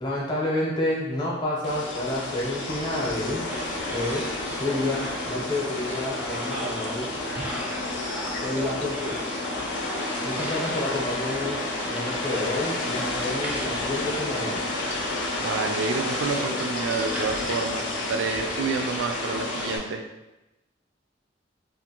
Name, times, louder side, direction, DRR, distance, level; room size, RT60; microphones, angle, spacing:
voice 1, 0.0-3.4 3.9-4.2 4.6-7.1 8.4-9.2 10.2-14.6, left 1 dB, 25° left, -5 dB, 0.7 m, -29 dB
sound 1, 1.6-19.8, left 2 dB, 70° left, 0.4 m, -31 dB
sound 2, 3.5-19.8, equal, 10° right, 0.3 m, -38 dB
voice 2, 15.4-20.0, right 4 dB, 85° right, 6 dB, 0.3 m, -29 dB
2.5 x 2.5 x 2.8 m, 1.0 s
head